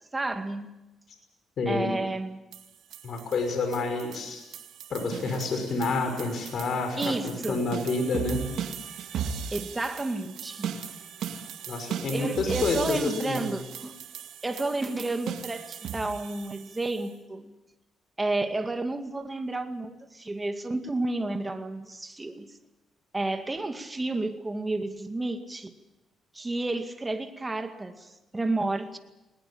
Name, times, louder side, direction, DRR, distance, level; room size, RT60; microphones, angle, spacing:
voice 1, 0.1-0.7 1.7-2.4 7.0-7.6 9.5-10.7 11.8-14.0 14.4-17.5 18.2-22.5 23.1-25.7 26.3-29.0, right 2 dB, 20° right, 2.2 m, -31 dB
voice 2, 1.6-1.9 3.0-4.4 4.9-8.4 11.7-13.5, left 3 dB, 60° left, 5.9 m, -29 dB
sound 1, 2.5-17.1, right 8 dB, 80° right, 2.2 m, -38 dB
20.0 x 20.0 x 8.9 m
cardioid pair, 90°, 0 cm